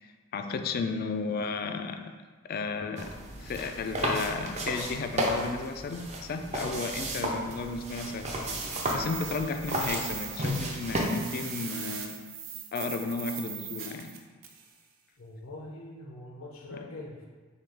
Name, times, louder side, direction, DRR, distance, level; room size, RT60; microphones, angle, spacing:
voice 1, 0.3-2.1 2.5-3.1 3.4-8.3 8.9-12.2 12.7-14.1, left 4 dB, 45° left, 7 dB, 0.3 m, -33 dB
sound 1, 3.0-11.1, right 1 dB, 35° right, 0.6 m, -33 dB
sound 2, 7.5-14.7, right 8 dB, 75° right, 0.5 m, -40 dB
voice 2, 15.2-17.3, left 2 dB, 85° left, -2 dB, 0.6 m, -43 dB
6.7 x 2.3 x 3.4 m, 1.4 s
head